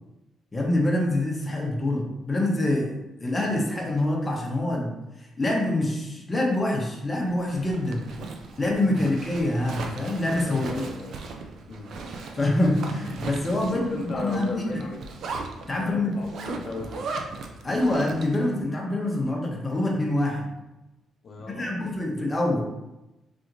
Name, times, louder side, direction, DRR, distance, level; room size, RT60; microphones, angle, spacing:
voice 1, 0.5-2.9 3.2-8.0 8.6-10.8 12.3-14.8 15.7-16.2 17.6-20.5 21.6-22.6, left 1 dB, 25° left, -1 dB, 0.8 m, -25 dB
Zipper (clothing), 7.3-18.5, right 3 dB, 65° right, 0.4 m, -38 dB
voice 2, 10.4-11.1 11.7-11.9 13.6-15.0 15.7-17.1 21.2-21.9, left 3 dB, 55° left, 0 dB, 0.6 m, -36 dB
3.5 x 2.8 x 2.5 m, 0.97 s
cardioid pair, 90°, 0 cm